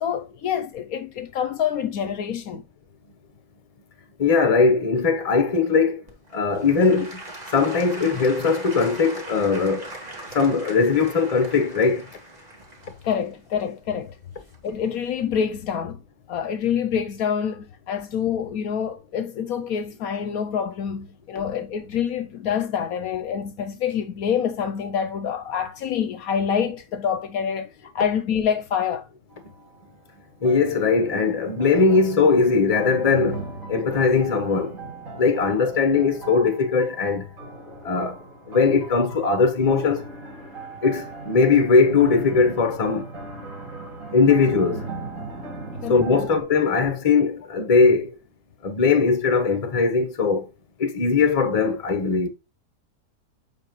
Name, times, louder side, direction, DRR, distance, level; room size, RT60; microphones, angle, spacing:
voice 1, 0.0-2.6 13.0-14.2 14.6-16.0 16.3-29.0 45.8-46.3, left 8 dB, 70° left, 1.1 m, -26 dB
voice 2, 4.2-6.0 6.3-7.1 7.5-9.9 10.3-12.0 30.4-33.4 33.7-34.8 35.2-37.3 37.8-38.2 38.5-40.0 40.8-43.1 43.8-44.8 45.9-48.1 48.6-50.5 50.8-52.3, left 4 dB, 25° left, 0.9 m, -20 dB
Applause / Crowd, 6.1-15.0 15.6-15.7, right 2 dB, 25° right, 1.8 m, -40 dB
sound 1, 29.3-29.8 30.4-46.4, right 3 dB, 55° right, 2.4 m, -37 dB
7.3 x 5.1 x 3.1 m
omnidirectional pair, 1.6 m